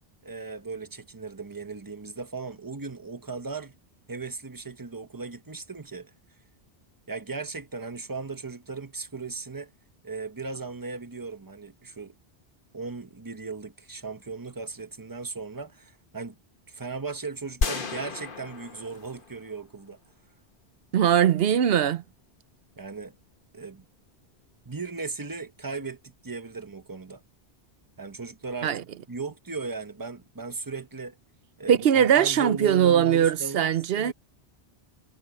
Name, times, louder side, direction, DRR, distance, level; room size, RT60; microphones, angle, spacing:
voice 1, 0.2-3.7 4.1-6.1 7.1-9.7 10.0-12.1 12.7-16.3 16.7-20.0 22.8-23.2 23.5-23.8 24.6-27.2 28.0-31.2 31.6-33.7 33.9-34.1, right 4 dB, 20° right, 1.1 m, -37 dB
sound 1, 17.6-19.9, left 4 dB, 55° left, 1.4 m, -32 dB
voice 2, 20.9-22.0 28.6-28.8 31.7-34.1, right 9 dB, 65° right, 0.9 m, -21 dB
omnidirectional pair, 1.1 m